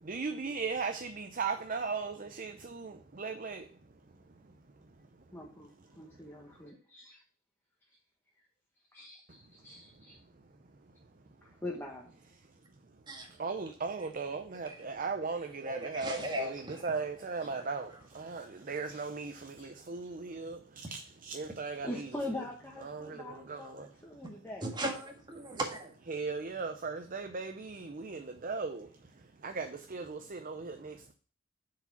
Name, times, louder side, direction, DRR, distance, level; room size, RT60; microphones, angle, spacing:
voice 1, 0.0-3.7 13.4-22.1 22.8-23.9 26.1-28.9 29.4-31.1, right 4 dB, 40° right, 0.6 m, -37 dB
voice 2, 5.3-7.2 8.9-9.2 9.6-10.2 11.4-12.1 16.1-16.5 17.4-17.6 18.9-19.1 19.6-19.7 20.9-21.0 21.8-24.8, left 1 dB, 10° left, 1.2 m, -43 dB
voice 3, 15.6-16.9 17.5-17.6 24.6-25.9, right 1 dB, 20° right, 1.7 m, -37 dB
7.3 x 4.9 x 5.9 m
head